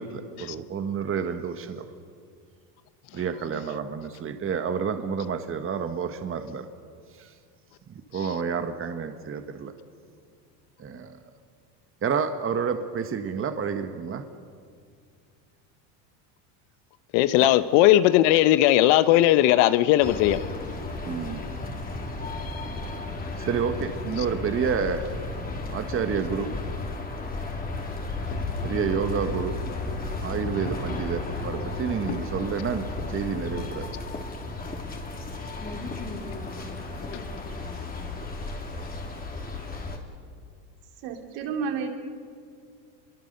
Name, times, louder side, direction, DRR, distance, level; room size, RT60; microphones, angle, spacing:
voice 1, 0.0-1.8 3.1-6.7 7.2-7.3 8.1-9.7 10.8-11.2 12.0-14.3 17.4-17.5 21.0-21.5 23.4-25.1 25.7-26.5 28.6-29.6 30.2-33.9, right 6 dB, 25° right, 8 dB, 1.4 m, -29 dB
voice 2, 17.1-20.4 32.1-32.2 37.1-37.2, left 14 dB, 60° left, 14 dB, 1.0 m, -18 dB
sound 1, 20.0-40.0, left 2 dB, 20° left, 3.2 m, -34 dB
voice 3, 41.0-41.9, right 5 dB, 60° right, 3 dB, 3.4 m, -30 dB
27.0 x 23.0 x 6.7 m, 2.2 s
supercardioid pair, 110°, 49 cm